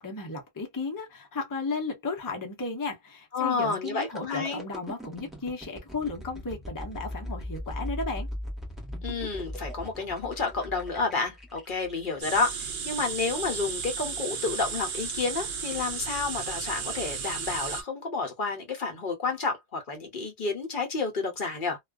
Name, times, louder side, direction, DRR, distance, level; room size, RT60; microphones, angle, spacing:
voice 1, 0.0-8.3, left 3 dB, 25° left, 0.6 m, -34 dB
voice 2, 3.3-4.6 9.0-21.8, left 4 dB, 55° left, 0.8 m, -30 dB
sound 1, 3.7-13.5 14.0-14.2, left 1 dB, ahead, 1.0 m, -39 dB
sound 2, 12.2-17.8, right 6 dB, 60° right, 0.7 m, -34 dB
2.3 x 2.2 x 2.3 m
omnidirectional pair, 1.1 m